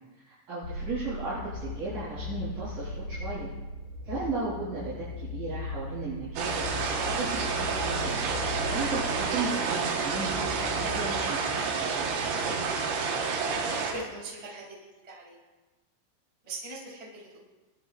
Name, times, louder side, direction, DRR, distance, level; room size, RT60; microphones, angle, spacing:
voice 1, 0.2-3.5 4.1-5.0 5.3-8.2 8.6-12.2, right 3 dB, 45° right, -14 dB, 6.3 m, -35 dB
sound 1, 0.6-11.1, left 2 dB, 65° left, 2.8 m, -38 dB
sound 2, 6.4-13.9, right 5 dB, 70° right, 3.5 m, -29 dB
voice 2, 12.9-13.3 13.7-14.7 15.0-15.4 16.4-17.4, right 2 dB, 15° right, -5 dB, 1.5 m, -41 dB
23.0 x 10.5 x 2.6 m, 1.2 s
omnidirectional pair, 5.8 m